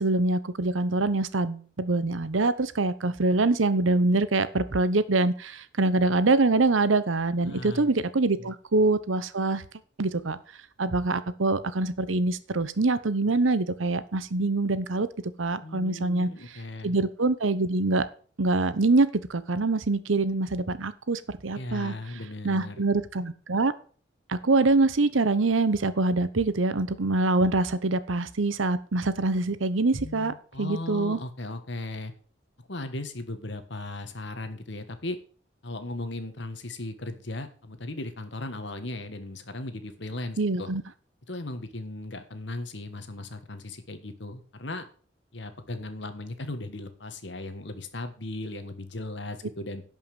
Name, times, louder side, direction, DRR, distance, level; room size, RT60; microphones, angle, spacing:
voice 1, 0.0-9.6 10.0-10.4 10.8-15.1 15.4-16.3 16.8-18.1 18.4-21.9 22.4-23.7 24.3-31.2 40.4-40.8, right 2 dB, 90° right, 15 dB, 0.9 m, -24 dB
voice 2, 7.4-7.9 8.4-8.5 15.6-17.0 21.5-22.8 29.9-32.1 32.6-35.2 35.6-40.7 41.3-44.9 45.3-49.8, left 2 dB, 70° left, 9 dB, 1.5 m, -37 dB
11.0 x 5.7 x 7.2 m, 0.43 s
head